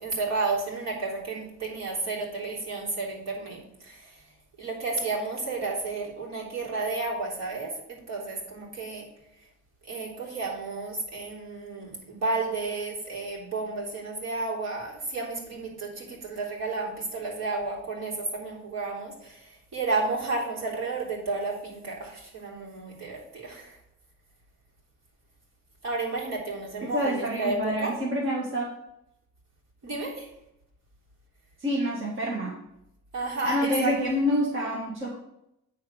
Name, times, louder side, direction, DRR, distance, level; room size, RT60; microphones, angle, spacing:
voice 1, 0.0-4.2 4.6-9.0 9.9-23.8 25.8-27.9 29.8-30.3 33.1-33.9, right 3 dB, 60° right, -3 dB, 3.4 m, -32 dB
voice 2, 26.8-28.6 31.6-32.5 33.4-35.1, equal, 40° right, -4 dB, 1.8 m, -27 dB
9.7 x 3.8 x 6.3 m, 0.84 s
cardioid pair, 90°, 30 cm